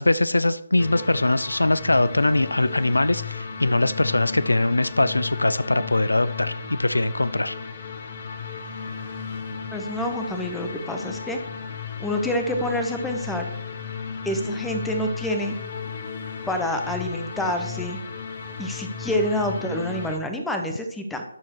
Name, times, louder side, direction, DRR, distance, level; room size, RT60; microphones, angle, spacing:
voice 1, 0.0-7.5, left 2 dB, 85° left, 15 dB, 0.4 m, -22 dB
sound 1, 0.8-20.2, left 5 dB, 40° left, 1.0 m, -35 dB
voice 2, 9.7-11.4 12.0-13.5 14.2-15.6 16.5-18.0 18.6-21.2, left 1 dB, 5° left, 4 dB, 0.8 m, -27 dB
12.0 x 4.6 x 4.6 m, 0.77 s
figure-of-eight pair, 150°, 0 cm